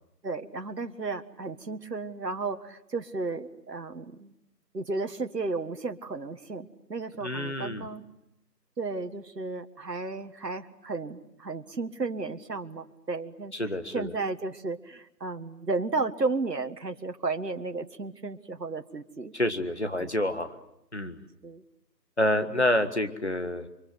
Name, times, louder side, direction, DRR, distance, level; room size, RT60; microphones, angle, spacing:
voice 1, 0.2-4.3 4.7-8.0 8.8-19.3 20.0-20.1 21.4-21.6, right 3 dB, 70° right, 7 dB, 1.6 m, -33 dB
voice 2, 7.2-7.8 13.6-14.1 19.3-20.5 20.9-21.2 22.2-23.7, left 1 dB, 40° left, 8 dB, 1.6 m, -28 dB
30.0 x 24.0 x 7.8 m, 0.82 s
figure-of-eight pair, 180°, 50 cm